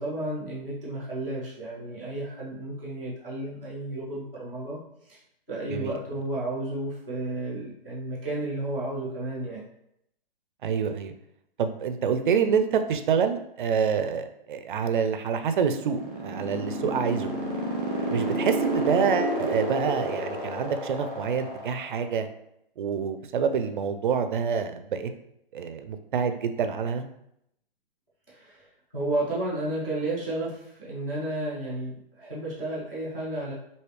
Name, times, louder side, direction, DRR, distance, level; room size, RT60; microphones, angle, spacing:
voice 1, 0.0-4.8 5.1-5.2 5.5-9.6 28.3-28.7 28.9-33.5, right 1 dB, 10° left, -15 dB, 0.4 m, -32 dB
voice 2, 10.6-11.1 11.6-17.3 18.1-22.3 22.8-25.1 25.5-27.0, right 6 dB, 60° right, 9 dB, 0.4 m, -27 dB
sound 1, 15.7-22.1, right 2 dB, 15° right, 1.1 m, -30 dB
3.2 x 2.7 x 3.0 m, 0.77 s
hypercardioid pair, 160°, 29 cm